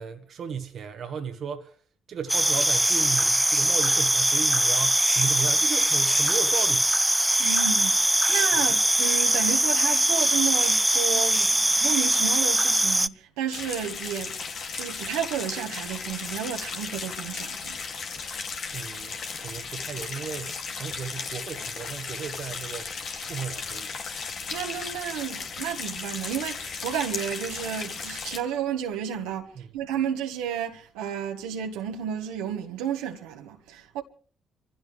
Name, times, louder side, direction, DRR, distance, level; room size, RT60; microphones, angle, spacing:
voice 1, 0.0-1.8 2.1-6.9 18.7-22.9 23.3-23.9 29.5-29.7, right 7 dB, 60° right, 1.5 m, -35 dB
sound 1, 2.3-13.1, right 1 dB, 5° right, 0.6 m, -22 dB
voice 2, 7.4-14.4 14.7-17.8 24.5-34.0, right 8 dB, 80° right, 1.7 m, -32 dB
sound 2, 13.5-28.4, left 5 dB, 60° left, 2.4 m, -35 dB
26.0 x 15.5 x 3.3 m
hypercardioid pair, 45°, 0 cm